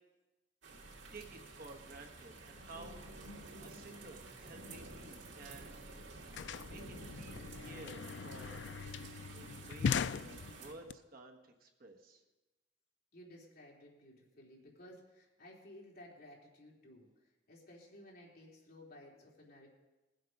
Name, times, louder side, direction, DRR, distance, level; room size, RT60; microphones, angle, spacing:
sound 1, 0.6-10.7, right 2 dB, 80° right, 2.6 m, -51 dB
voice 1, 1.1-3.0 3.2-3.3 3.6-5.7 6.6-8.7 9.3-12.2, right 2 dB, 50° right, 3 dB, 1.4 m, -53 dB
sound 2, 5.4-5.5 5.7-10.9, left 6 dB, 70° left, 0.4 m, -40 dB
voice 2, 13.1-19.7, left 1 dB, 55° left, -3 dB, 3.3 m, -56 dB
20.5 x 7.8 x 5.3 m, 1.1 s
head